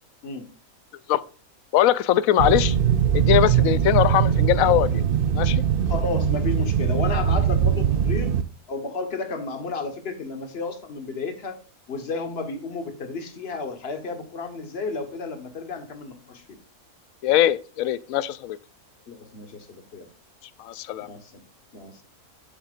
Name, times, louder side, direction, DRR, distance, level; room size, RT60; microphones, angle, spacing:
voice 1, 1.7-2.8 3.1-5.1 5.3-5.6 17.2-18.6 20.6-21.1, left 12 dB, 70° left, 0.9 m, -21 dB
sound 1, 2.4-8.4, right 8 dB, 55° right, 0.6 m, -21 dB
voice 2, 5.9-8.3 8.7-11.6 11.9-16.6 19.1-20.1 21.0-21.4 21.7-22.0, left 4 dB, 45° left, 1.5 m, -32 dB
8.7 x 7.2 x 2.5 m
omnidirectional pair, 1.6 m